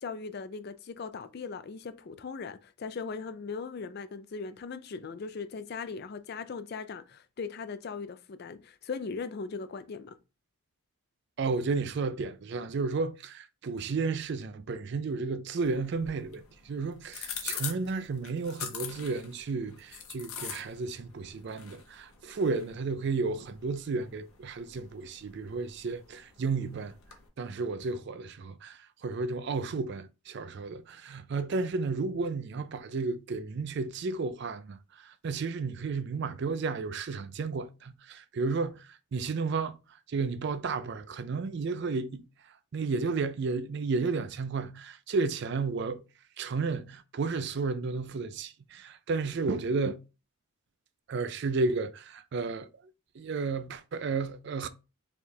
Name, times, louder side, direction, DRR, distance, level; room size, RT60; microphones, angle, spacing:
voice 1, 0.0-10.2, left 5 dB, 45° left, 0.3 m, -39 dB
voice 2, 11.4-26.9 27.4-39.8 40.1-42.2 42.7-46.0 46.4-50.0 51.1-52.7 53.2-54.7, right 4 dB, 50° right, 0.4 m, -32 dB
sound 1, 15.6-27.3, left 7 dB, 75° left, 0.8 m, -44 dB
3.3 x 2.4 x 4.3 m
head